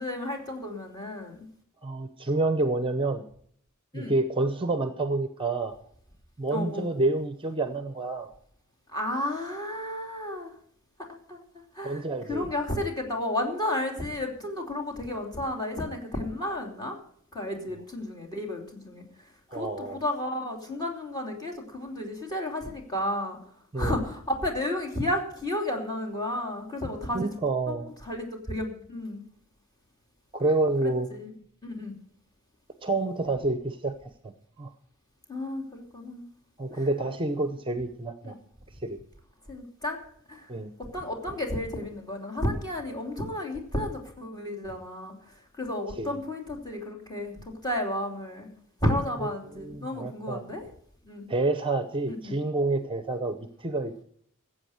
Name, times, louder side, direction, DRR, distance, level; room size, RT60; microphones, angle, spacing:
voice 1, 0.0-1.5 3.9-4.1 6.5-6.9 8.9-10.5 11.1-11.4 11.7-17.0 17.3-19.0 19.5-23.4 23.7-27.3 27.7-27.8 28.0-29.2 30.8-31.3 31.6-31.9 35.3-36.3 36.7-36.9 38.2-38.3 39.5-40.0 40.3-40.5 40.8-48.5 48.8-50.7 51.0-51.2 52.1-52.3, left 1 dB, 20° left, 2 dB, 2.9 m, -32 dB
voice 2, 1.8-3.2 3.9-5.8 6.4-8.3 11.8-12.5 19.5-20.0 23.7-24.0 27.1-27.9 30.3-31.1 32.8-33.9 34.6-34.7 36.6-38.4 38.8-39.0 40.5-40.7 46.0-46.2 49.6-50.4 51.3-54.0, right 2 dB, 25° right, 9 dB, 0.8 m, -28 dB
15.0 x 8.0 x 6.4 m, 0.64 s
head